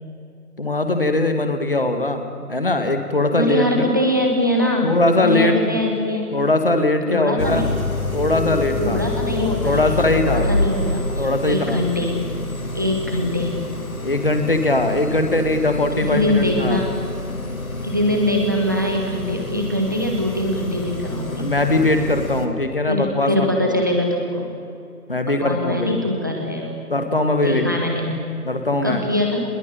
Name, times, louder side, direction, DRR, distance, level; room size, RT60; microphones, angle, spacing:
voice 1, 0.6-3.9 4.8-5.8 6.3-7.7 8.1-9.0 9.6-10.5 11.2-11.8 13.2-13.3 14.0-16.8 21.4-23.8 25.1-25.9 26.9-27.7 28.5-29.0, left 2 dB, 35° left, 6 dB, 2.1 m, -20 dB
voice 2, 3.3-6.3 7.1-7.7 8.7-12.2 12.7-13.6 16.0-16.9 17.8-21.5 22.9-24.5 25.3-26.8 27.3-28.1 28.8-29.4, left 1 dB, 15° right, 1 dB, 1.7 m, -23 dB
sound 1, 7.4-22.5, left 2 dB, 65° left, 2.8 m, -27 dB
22.0 x 21.5 x 9.1 m, 2.5 s
figure-of-eight pair, 175°, 46 cm